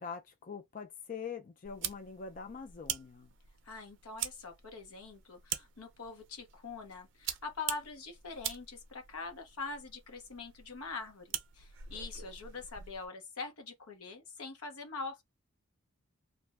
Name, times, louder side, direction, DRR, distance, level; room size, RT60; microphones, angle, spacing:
voice 1, 0.0-3.3, left 6 dB, 35° left, 0.3 m, -44 dB
sound 1, 1.6-13.1, right 10 dB, 55° right, 0.4 m, -44 dB
voice 2, 3.6-15.2, left 4 dB, 85° left, 0.8 m, -44 dB
2.5 x 2.0 x 3.4 m
head